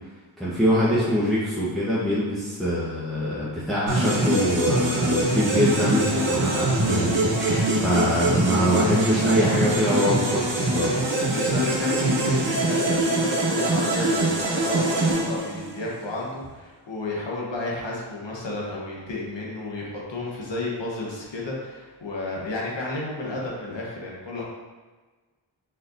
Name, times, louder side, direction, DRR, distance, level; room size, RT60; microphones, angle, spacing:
voice 1, 0.4-11.2, equal, ahead, -9 dB, 1.1 m, -24 dB
sound 1, 3.9-15.9, right 1 dB, 60° right, 1.2 m, -23 dB
voice 2, 11.3-24.4, left 2 dB, 60° left, -3 dB, 1.2 m, -32 dB
4.2 x 3.9 x 2.6 m, 1.3 s
cardioid pair, 40°, 48 cm